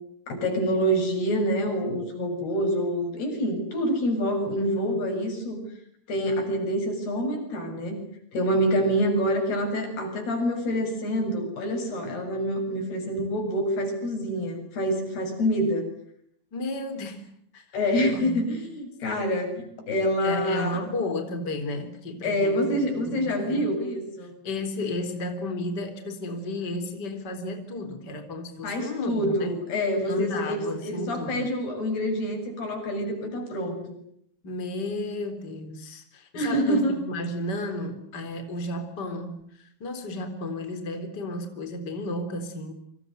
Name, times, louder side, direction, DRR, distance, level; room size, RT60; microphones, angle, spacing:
voice 1, 0.3-5.6 6.1-8.0 8.3-15.9 17.7-20.8 22.2-24.4 28.6-33.9 36.3-37.0, equal, 85° left, 5 dB, 9.5 m, -26 dB
voice 2, 16.5-17.6 18.1-18.4 20.2-23.7 24.4-29.5 30.1-31.5 34.4-42.7, left 2 dB, 25° left, 8 dB, 4.1 m, -33 dB
29.5 x 25.5 x 8.0 m, 0.69 s
omnidirectional pair, 4.4 m